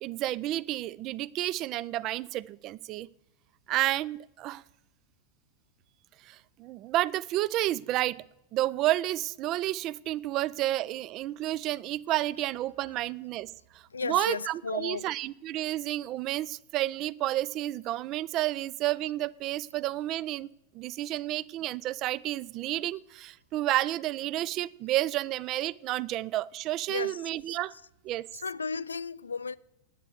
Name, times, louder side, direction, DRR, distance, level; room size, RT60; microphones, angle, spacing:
voice 1, 0.0-3.1 3.7-4.6 6.3-8.2 8.5-13.5 14.0-20.5 20.7-27.7 28.0-28.2, right 15 dB, 35° right, 0.3 m, -30 dB
voice 2, 13.9-15.1 26.9-27.2 27.5-27.8 28.3-29.6, left 5 dB, 75° left, 0.3 m, -35 dB
10.5 x 8.6 x 6.6 m
figure-of-eight pair, 90°, 0 cm